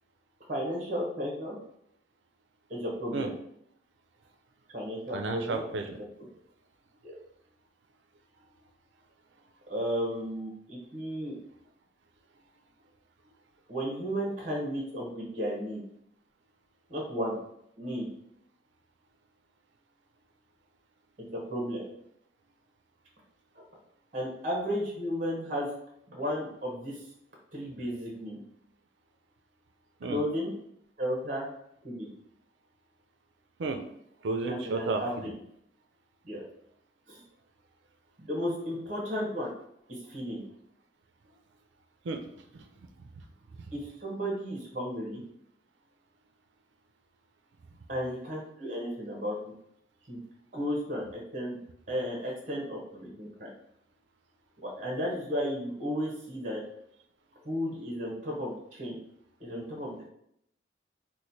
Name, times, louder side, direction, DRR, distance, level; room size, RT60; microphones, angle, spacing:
voice 1, 0.5-1.6 2.7-3.3 4.7-5.6 7.0-7.1 9.7-11.4 13.7-15.8 16.9-17.4 17.8-18.1 21.3-21.8 24.1-25.7 26.1-27.0 27.5-28.4 30.1-30.5 31.0-31.5 31.8-32.1 34.5-35.3 36.2-36.4 37.1-37.2 38.3-39.5 39.9-40.4 43.7-45.2 47.9-49.3 50.1-50.2 50.5-51.6 51.9-53.5 54.6-56.6 57.4-59.0 59.4-60.1, equal, 40° right, -2 dB, 0.9 m, -33 dB
voice 2, 5.1-5.9 30.0-30.2 33.6-33.8 34.2-35.0 42.0-42.6, right 3 dB, 80° right, 6 dB, 0.4 m, -32 dB
3.1 x 2.1 x 4.0 m, 0.73 s
head